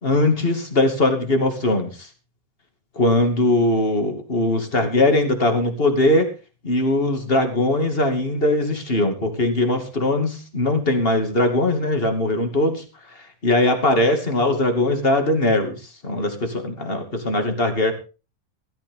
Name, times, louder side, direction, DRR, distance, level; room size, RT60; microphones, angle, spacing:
voice 1, 0.0-2.1 3.0-6.3 6.6-12.8 13.2-17.9, left 2 dB, 20° left, 6 dB, 2.3 m, -20 dB
16.5 x 14.0 x 3.8 m, 0.33 s
omnidirectional pair, 3.5 m